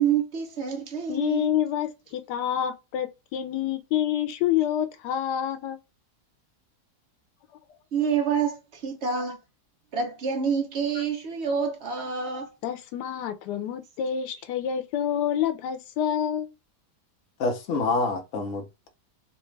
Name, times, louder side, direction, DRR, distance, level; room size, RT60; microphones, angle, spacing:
voice 1, 0.0-1.5 7.9-9.4 9.9-12.5, right 6 dB, 60° right, 0.7 m, -27 dB
voice 2, 1.1-5.8 11.0-11.1 12.6-16.5, left 10 dB, 85° left, 1.2 m, -27 dB
voice 3, 17.4-18.9, left 3 dB, 60° left, 0.9 m, -27 dB
3.3 x 2.3 x 3.1 m
omnidirectional pair, 1.8 m